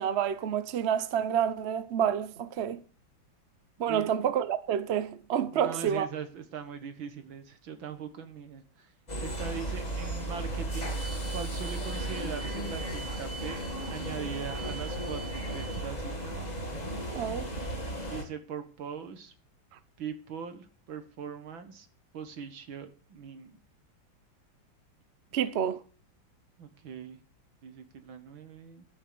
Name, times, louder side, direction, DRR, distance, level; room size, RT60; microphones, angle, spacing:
voice 1, 0.0-2.8 3.8-6.1 17.1-17.5 25.3-25.8, right 9 dB, 50° right, 0.8 m, -28 dB
voice 2, 5.5-8.9 9.2-11.0 11.3-16.6 18.1-19.3 20.0-21.9 22.1-23.6 26.6-27.2 27.6-28.8, right 7 dB, 80° right, 2.4 m, -41 dB
sound 1, 9.1-18.2, right 1 dB, 20° left, 2.2 m, -35 dB
13.0 x 6.5 x 6.9 m
omnidirectional pair, 2.1 m